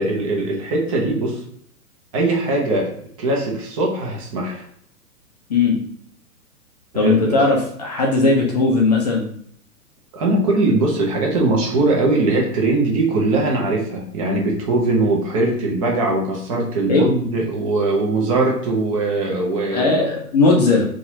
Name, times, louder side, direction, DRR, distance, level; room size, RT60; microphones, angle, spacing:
voice 1, 0.0-1.4 2.1-2.9 3.2-4.6 6.9-7.4 10.1-19.9, right 2 dB, 25° right, -1 dB, 0.5 m, -20 dB
voice 2, 6.9-9.2 16.9-17.1 19.7-20.9, left 3 dB, 30° left, -2 dB, 0.4 m, -17 dB
4.0 x 2.4 x 2.6 m, 0.64 s
figure-of-eight pair, 115°, 46 cm